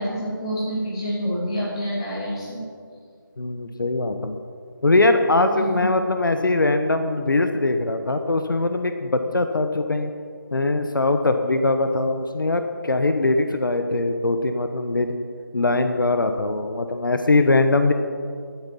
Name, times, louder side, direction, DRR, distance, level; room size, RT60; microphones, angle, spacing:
voice 1, 0.0-2.6 5.5-5.8, equal, 15° left, -7 dB, 3.2 m, -27 dB
voice 2, 3.4-4.4 4.8-10.1 10.5-15.2 15.5-17.9, left 2 dB, 65° left, 7 dB, 1.1 m, -21 dB
16.0 x 12.5 x 5.5 m, 2.2 s
figure-of-eight pair, 175°, 12 cm